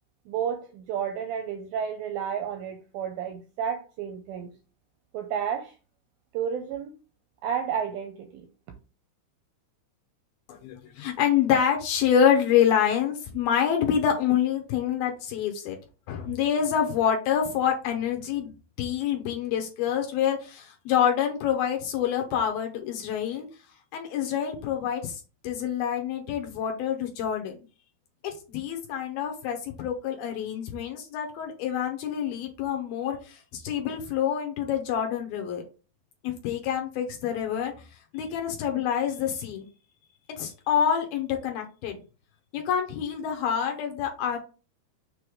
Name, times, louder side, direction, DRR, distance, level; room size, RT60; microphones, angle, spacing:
voice 1, 0.3-4.5 5.1-5.7 6.3-6.9 7.4-8.5, right 8 dB, 80° right, 5 dB, 2.1 m, -31 dB
voice 2, 10.5-15.8 16.1-18.5 18.8-23.5 23.9-27.6 28.2-35.6 36.2-37.7 38.1-39.7 40.4-42.0 42.5-44.4, left 8 dB, 75° left, 3 dB, 2.4 m, -27 dB
6.8 x 3.2 x 5.0 m, 0.35 s
omnidirectional pair, 4.9 m